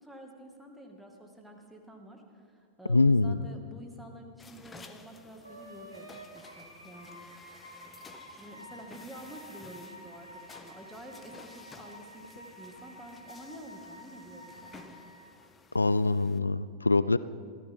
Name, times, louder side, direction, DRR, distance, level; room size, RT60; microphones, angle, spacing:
voice 1, 0.0-7.3 8.2-14.7, right 1 dB, ahead, 1 dB, 2.3 m, -49 dB
voice 2, 2.9-3.5 15.7-17.2, left 3 dB, 80° left, 17 dB, 0.3 m, -24 dB
sound 1, 4.4-16.4, left 4 dB, 15° left, 1.0 m, -54 dB
Wind instrument woodwind instrument, 5.4-15.3, equal, 90° right, 3.4 m, -50 dB
24.5 x 15.0 x 3.8 m, 2.3 s
figure-of-eight pair, 90°, 0 cm